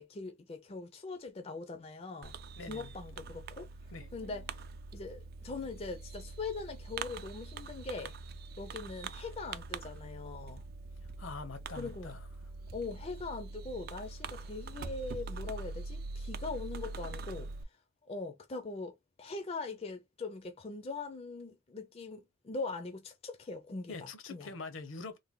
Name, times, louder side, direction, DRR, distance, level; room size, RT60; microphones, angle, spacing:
voice 1, 0.0-2.3 2.7-3.7 4.1-4.6 4.9-8.1 8.6-10.6 11.8-12.2 12.7-17.8 18.0-24.5, left 3 dB, 30° left, 0.4 m, -41 dB
Fireworks, 2.2-17.6, right 4 dB, 50° right, 0.3 m, -44 dB
voice 2, 2.6-2.9 3.9-4.1 11.0-12.2 23.9-25.2, left 4 dB, 70° left, 0.7 m, -44 dB
3.3 x 2.1 x 3.6 m
head